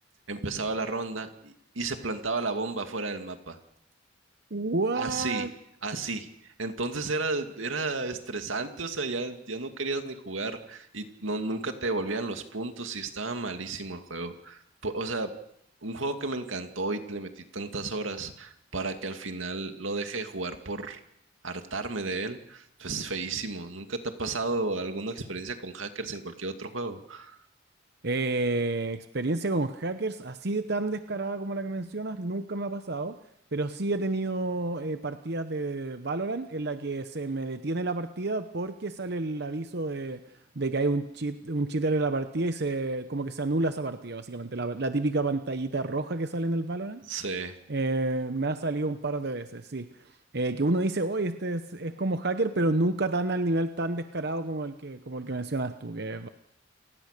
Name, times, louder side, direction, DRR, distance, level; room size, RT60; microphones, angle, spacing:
voice 1, 0.3-3.6 4.9-5.5 5.8-6.3 6.6-15.3 15.8-21.0 21.4-27.4 47.1-47.6, right 3 dB, 90° right, 6 dB, 2.4 m, -33 dB
voice 2, 4.5-5.5 28.0-33.2 33.5-40.2 40.6-47.0 47.7-56.3, right 2 dB, 55° right, 9 dB, 1.0 m, -29 dB
29.0 x 19.0 x 6.8 m, 0.76 s
head